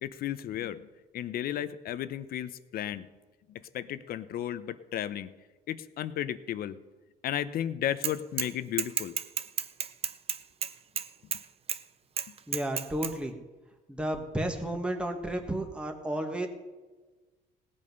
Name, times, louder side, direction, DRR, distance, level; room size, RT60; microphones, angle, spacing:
voice 1, 0.0-0.9 1.1-3.1 3.5-5.3 5.7-6.8 7.2-9.2 12.3-12.4, left 11 dB, 60° left, 14 dB, 0.8 m, -34 dB
Bicycle / Mechanisms, 8.0-8.5 8.8-11.4 11.7-11.8 12.2-13.1, right 7 dB, 35° right, 0.7 m, -31 dB
voice 2, 12.5-13.3 13.9-16.5, right 1 dB, 5° right, 3 dB, 1.5 m, -32 dB
18.0 x 8.7 x 5.4 m, 1.2 s
cardioid pair, 110°, 17 cm